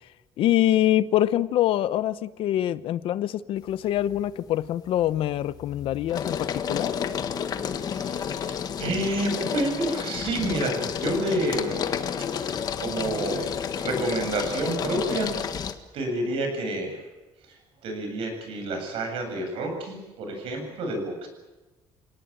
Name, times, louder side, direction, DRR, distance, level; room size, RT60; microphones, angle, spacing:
voice 1, 0.4-6.9, left 13 dB, 65° left, 0.9 m, -24 dB
sound 1, 3.7-4.2 4.6-15.7, left 7 dB, 40° left, 1.6 m, -31 dB
voice 2, 7.8-12.1 12.3-15.3 15.9-17.0 17.5-21.3, right 2 dB, 65° right, 7.9 m, -29 dB
27.5 x 18.5 x 9.0 m
cardioid pair, 170°, 10 cm